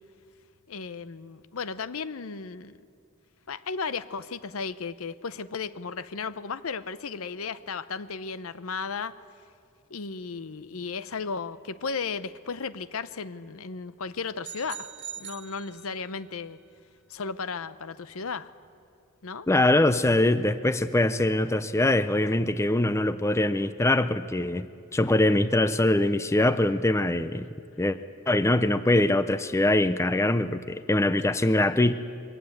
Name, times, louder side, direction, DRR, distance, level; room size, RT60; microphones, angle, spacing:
voice 1, 0.7-2.8 3.5-9.1 9.9-14.9 15.2-16.6 17.1-18.5 19.2-19.5, left 5 dB, 70° left, 14 dB, 0.7 m, -35 dB
sound 1, 14.4-16.3, right 10 dB, 55° right, 1.3 m, -42 dB
voice 2, 19.5-24.7 24.9-27.5 27.8-28.0 28.3-31.9, left 1 dB, 15° left, 13 dB, 0.5 m, -23 dB
22.5 x 18.0 x 7.9 m, 2.3 s
head